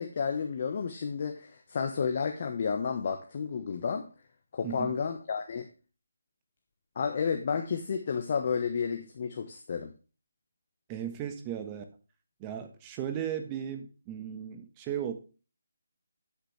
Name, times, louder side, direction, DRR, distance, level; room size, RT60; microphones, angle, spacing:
voice 1, 0.0-4.1 4.5-5.7 7.0-9.9, left 6 dB, 40° left, 5 dB, 1.2 m, -31 dB
voice 2, 4.6-4.9 10.9-11.8 12.4-15.1, right 9 dB, 20° right, 6 dB, 1.3 m, -36 dB
8.9 x 8.4 x 3.2 m, 0.34 s
figure-of-eight pair, 160°, 0 cm